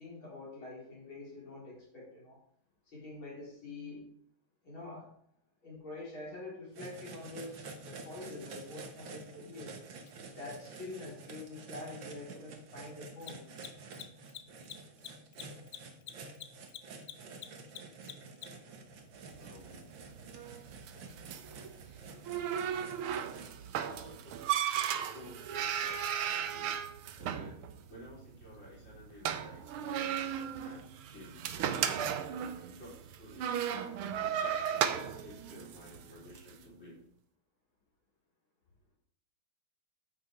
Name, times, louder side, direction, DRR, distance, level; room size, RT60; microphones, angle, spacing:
voice 1, 0.0-2.4 2.9-4.1 4.6-5.1 5.6-9.8 10.3-13.6, left 2 dB, 70° left, -5 dB, 4.9 m, -46 dB
sound 1, 6.7-23.5, right 3 dB, 65° right, 2.0 m, -49 dB
Mechanisms, 10.1-10.2 13.1-18.7, left 11 dB, 85° left, 1.7 m, -47 dB
sound 2, 19.3-36.5, right 9 dB, 85° right, 1.7 m, -36 dB
voice 2, 19.4-19.9 21.8-22.0 23.8-24.8 25.1-26.8 27.2-27.6 27.9-30.8 31.1-32.1 32.7-37.0, left 1 dB, 35° left, -6 dB, 4.3 m, -53 dB
14.0 x 6.4 x 4.6 m, 0.63 s
omnidirectional pair, 2.3 m